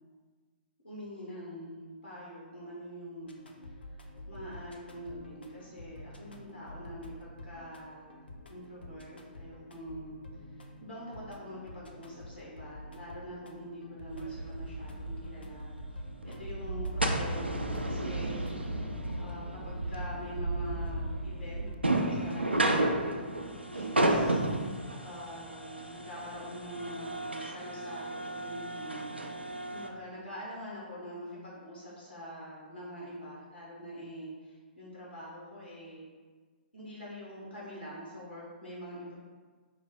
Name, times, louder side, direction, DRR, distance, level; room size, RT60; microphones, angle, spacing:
voice 1, 0.8-8.2 8.5-10.2 10.5-18.4 19.2-21.6 22.1-23.3 23.7-29.1 29.4-36.1 36.7-39.1, equal, 90° left, -5 dB, 1.0 m, -45 dB
sound 1, 3.2-23.0, left 1 dB, 70° left, 0.5 m, -50 dB
sound 2, 14.1-29.9, right 1 dB, 90° right, 0.4 m, -33 dB
4.7 x 2.0 x 3.8 m, 1.5 s
figure-of-eight pair, 120°, 6 cm